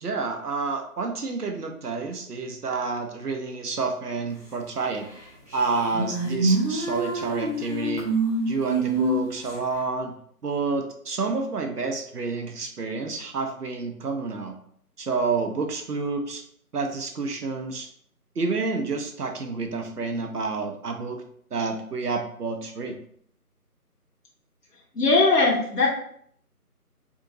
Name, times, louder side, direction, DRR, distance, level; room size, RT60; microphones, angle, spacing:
voice 1, 0.0-5.1 5.5-8.1 8.5-10.1 10.4-14.6 15.0-16.4 16.7-17.9 18.4-21.2 21.5-23.0, right 4 dB, 80° right, 4 dB, 0.7 m, -29 dB
sound 1, 5.1-5.2 5.5-9.5, right 2 dB, 25° right, 0.8 m, -26 dB
voice 2, 25.0-25.9, left 3 dB, 85° left, -3 dB, 0.9 m, -19 dB
2.8 x 2.5 x 2.7 m, 0.62 s
figure-of-eight pair, 160°, 46 cm